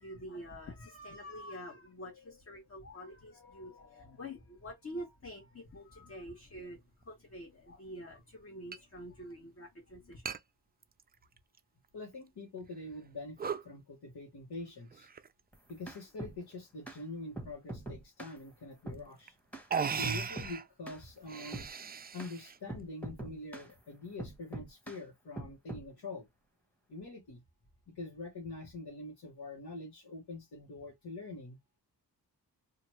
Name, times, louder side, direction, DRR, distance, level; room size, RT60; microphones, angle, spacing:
voice 1, 0.0-10.3, equal, 40° left, 1.2 m, -47 dB
sound 1, 7.0-7.1 8.7-8.8 9.2-9.3 10.2-10.4 10.8-11.6 12.1-12.2 12.8-13.1 13.4-13.7 14.9-15.4 16.2-16.6 18.5-18.6 19.3-19.4 19.7-20.7 21.2-22.6, right 6 dB, 25° right, 0.4 m, -37 dB
voice 2, 11.9-15.1 15.7-19.4 19.9-21.7 22.1-26.3 26.9-27.4 27.9-31.8, left 2 dB, 70° left, 1.2 m, -45 dB
sound 2, 15.5-16.4 16.9-17.0 17.4-18.4 18.9-19.1 19.5-19.7 20.0-20.6 20.9-21.0 21.5-21.7 22.2-22.3 22.7-23.7 24.2-25.0 25.4-25.9, right 2 dB, 5° left, 1.2 m, -43 dB
2.8 x 2.4 x 3.1 m
cardioid pair, 70°, 39 cm